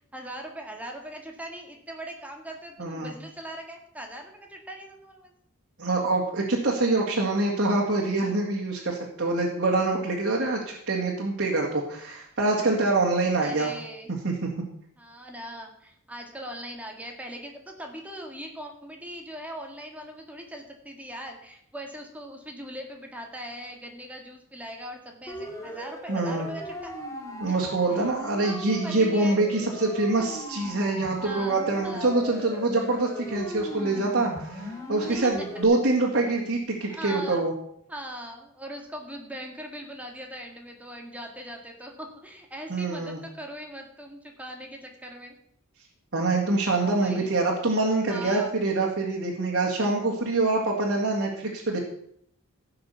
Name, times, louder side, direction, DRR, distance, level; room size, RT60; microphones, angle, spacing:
voice 1, 0.1-5.3 13.4-14.1 15.0-26.9 27.5-27.6 27.9-28.0 28.4-29.4 31.2-32.1 35.1-35.2 36.8-37.4 37.9-45.3 46.8-47.3 48.1-48.5, equal, 5° right, 2 dB, 1.9 m, -40 dB
voice 2, 2.8-3.1 5.8-13.7 14.2-14.5 26.1-26.5 27.4-37.5 42.7-43.2 46.1-51.8, right 2 dB, 55° right, -3 dB, 2.1 m, -25 dB
Siren, 25.3-35.6, equal, 15° left, 2.2 m, -38 dB
15.5 x 5.9 x 6.9 m, 0.70 s
head